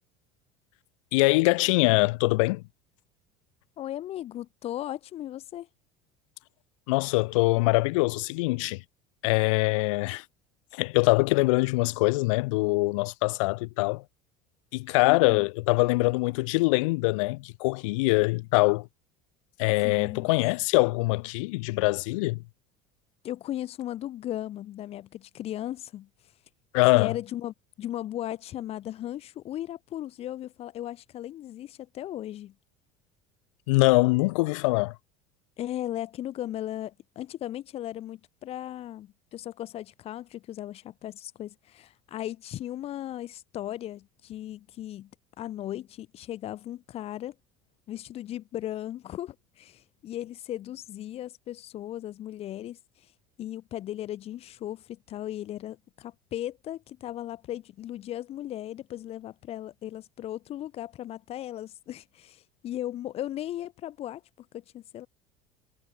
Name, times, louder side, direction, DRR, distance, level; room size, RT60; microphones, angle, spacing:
voice 1, 1.1-2.6 6.9-8.8 9.2-10.2 10.7-14.0 14.7-18.9 19.6-22.4 26.7-27.2 33.7-35.0, left 24 dB, 85° left, 7.9 m, -23 dB
voice 2, 3.8-5.7 15.0-15.5 19.8-20.3 23.2-26.1 26.9-32.5 35.6-45.1 45.4-47.3 47.9-52.8 53.4-65.1, left 12 dB, 40° left, 5.4 m, -37 dB
cardioid pair, 155°, 16 cm